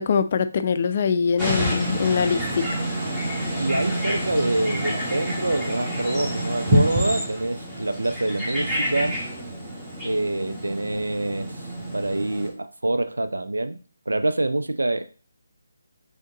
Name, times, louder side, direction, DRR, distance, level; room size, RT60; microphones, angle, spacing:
voice 1, 0.0-2.9, left 6 dB, 40° left, 11 dB, 0.4 m, -23 dB
sound 1, 1.4-12.5, equal, 10° right, 1.6 m, -27 dB
voice 2, 3.6-9.1 10.0-11.7 11.9-13.8 14.1-15.0, right 2 dB, 80° right, 9 dB, 0.5 m, -26 dB
3.8 x 3.5 x 3.8 m, 0.39 s
figure-of-eight pair, 150°, 0 cm